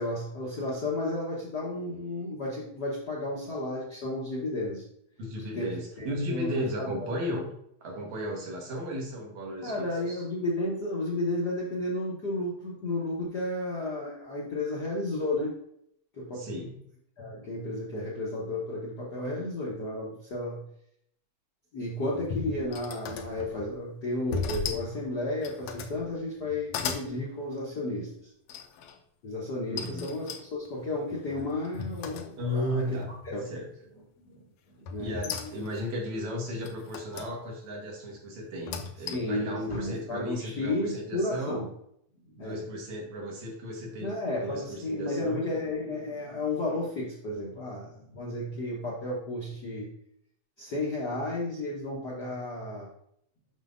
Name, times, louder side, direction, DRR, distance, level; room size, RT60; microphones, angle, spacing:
voice 1, 0.0-4.8 5.4-7.1 9.6-15.5 16.1-16.5 17.2-20.6 21.7-28.3 29.2-33.0 33.2-33.5 34.2-34.4 34.9-35.5 39.1-41.7 42.4-42.6 44.0-49.9 50.6-52.9, left 2 dB, 55° left, -6 dB, 1.1 m, -33 dB
voice 2, 5.2-7.5 7.8-10.2 16.4-16.8 29.7-30.1 32.4-33.1 33.5-33.7 35.0-41.6 42.4-45.4, equal, 70° right, -1 dB, 2.7 m, -35 dB
sound 1, 21.9-23.8 24.3-24.9 25.3-26.0 26.4-27.1 28.5-29.0 29.8-32.7 33.0-33.5 34.9-35.9 36.6-37.3 38.5-39.4, left 6 dB, 75° left, 1.5 m, -37 dB
7.4 x 6.1 x 2.6 m, 0.71 s
omnidirectional pair, 3.5 m